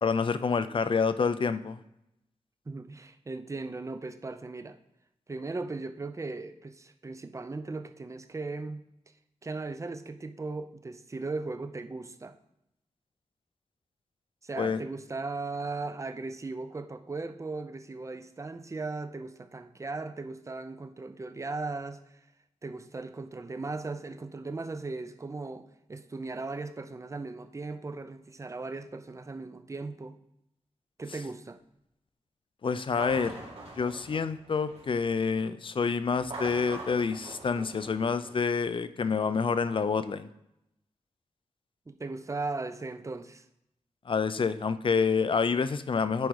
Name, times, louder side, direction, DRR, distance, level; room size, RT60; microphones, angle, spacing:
voice 1, 0.0-1.8 14.6-14.8 32.6-33.3 33.8-40.3 44.1-46.3, left 5 dB, 45° left, 0.5 m, -28 dB
voice 2, 2.7-4.8 5.3-8.8 9.4-12.3 14.4-22.2 22.6-30.2 31.0-31.6 41.9-43.5, right 3 dB, 25° right, 0.6 m, -37 dB
sound 1, 32.9-35.1 36.1-38.6, right 2 dB, 55° right, 2.7 m, -43 dB
10.5 x 4.9 x 4.7 m
wide cardioid pair, 100°, 12 cm